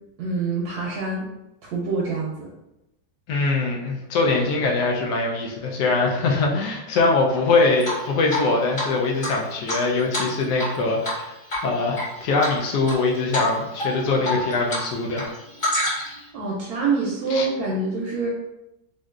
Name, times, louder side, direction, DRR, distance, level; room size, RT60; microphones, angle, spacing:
voice 1, 0.2-1.3 1.6-2.5 16.3-18.3, right 3 dB, 70° right, -3 dB, 1.0 m, -26 dB
voice 2, 3.3-11.3 11.6-15.3 17.3-17.5, left 3 dB, 75° left, 0 dB, 1.2 m, -22 dB
Drip, 7.8-8.5 8.8-8.9 9.2-10.8 11.0-11.2 11.5-12.0 12.4-13.0 13.3-13.5 13.8-14.8 15.1-16.2, left 1 dB, 30° left, 1.6 m, -27 dB
3.7 x 2.6 x 2.3 m, 0.90 s
omnidirectional pair, 1.9 m